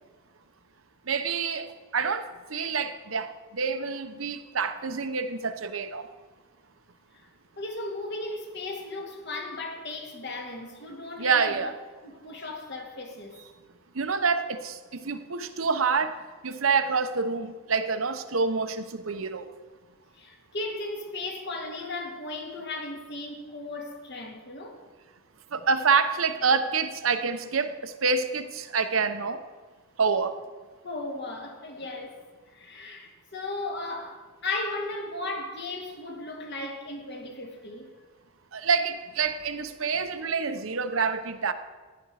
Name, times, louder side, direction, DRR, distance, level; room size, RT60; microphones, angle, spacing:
voice 1, 1.1-6.1 11.2-11.7 13.9-16.2 16.4-19.5 25.5-29.4 30.0-30.3 38.5-41.5, right 5 dB, 85° right, 0.9 m, -27 dB
voice 2, 7.6-11.7 12.0-13.4 20.2-24.8 30.8-32.2 32.5-37.9, left 2 dB, 60° left, 2.1 m, -36 dB
15.0 x 10.5 x 4.9 m
head